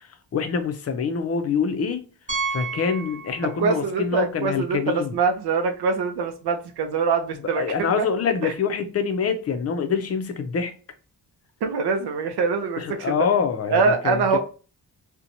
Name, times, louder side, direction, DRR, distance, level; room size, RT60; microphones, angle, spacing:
voice 1, 0.0-2.0 2.5-5.2 7.5-10.7 12.8-14.4, left 6 dB, 40° left, 0.4 m, -25 dB
Piano, 2.3-3.9 4.2-4.3 4.9-5.0 5.2-5.3 7.4-7.5, right 4 dB, 20° right, 0.7 m, -31 dB
voice 2, 3.4-8.1 8.4-8.5 11.6-13.1 13.7-14.4, right 4 dB, 75° right, 0.5 m, -24 dB
2.8 x 2.2 x 2.5 m
wide cardioid pair, 125°, 39 cm